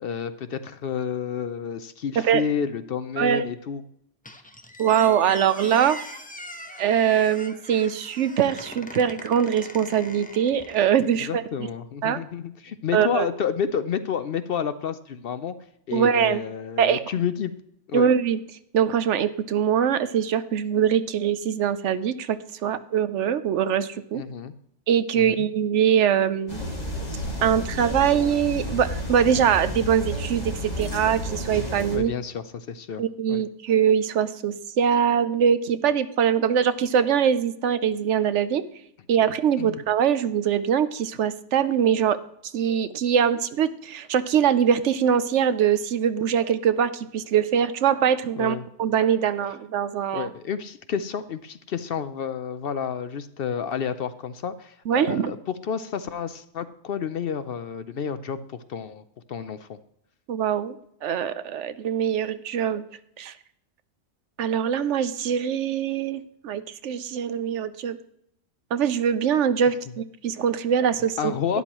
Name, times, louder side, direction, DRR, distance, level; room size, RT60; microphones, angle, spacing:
voice 1, 0.0-3.8 11.3-15.6 15.9-17.5 17.9-18.1 24.2-24.5 25.1-25.5 31.9-33.0 33.3-33.4 39.6-39.8 48.4-48.6 50.1-55.4 55.6-58.4 58.7-59.0 59.3-59.8 71.2-71.6, left 7 dB, 60° left, 12 dB, 0.7 m, -30 dB
Squeak, 4.2-11.1, left 1 dB, 10° left, 0.7 m, -42 dB
voice 2, 4.8-6.0 6.8-11.7 12.0-12.2 12.9-13.3 15.9-16.4 16.8-17.1 17.9-18.4 18.7-24.2 24.9-26.6 27.4-32.1 33.0-38.6 39.1-42.2 42.5-50.3 54.9-55.3 60.3-60.8 61.0-62.8 63.2-63.4 64.4-68.0 68.7-71.3, right 8 dB, 75° right, 13 dB, 1.0 m, -23 dB
sound 1, 26.5-32.0, equal, 35° left, 2.3 m, -31 dB
12.0 x 10.5 x 3.0 m, 0.73 s
omnidirectional pair, 1.3 m